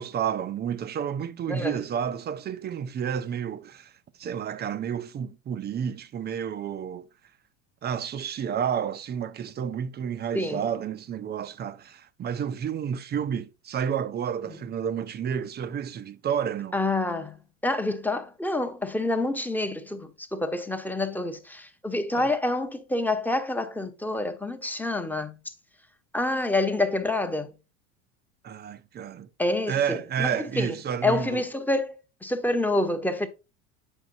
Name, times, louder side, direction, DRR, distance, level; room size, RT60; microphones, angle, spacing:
voice 1, 0.0-3.9 4.2-7.1 7.8-16.8 22.1-22.3 28.4-29.3 29.7-31.4, right 8 dB, 25° right, 0.5 m, -30 dB
voice 2, 1.5-1.8 10.3-10.6 14.5-14.6 16.7-17.4 17.6-25.5 26.1-27.5 29.4-30.8 31.0-33.3, left 2 dB, 5° left, 0.8 m, -27 dB
8.1 x 5.0 x 2.6 m
hypercardioid pair, 85°, 40 cm